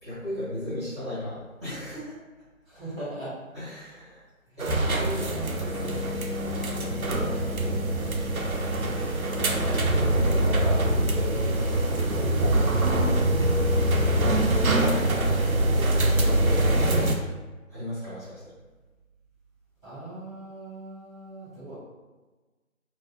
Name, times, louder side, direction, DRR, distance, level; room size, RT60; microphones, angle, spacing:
voice 1, 0.0-2.2 3.5-4.2 4.6-5.3 6.8-7.6 9.9-10.6 14.2-17.1 17.7-18.4, left 1 dB, 20° right, -14 dB, 1.3 m, -36 dB
voice 2, 2.7-3.3 4.5-4.6 5.2-6.3 10.1-12.6 12.9-13.4 19.8-21.7, right 1 dB, ahead, -22 dB, 0.8 m, -40 dB
sound 1, 4.6-17.1, right 1 dB, 90° right, 0.6 m, -24 dB
3.3 x 2.4 x 2.7 m, 1.2 s
figure-of-eight pair, 170°, 41 cm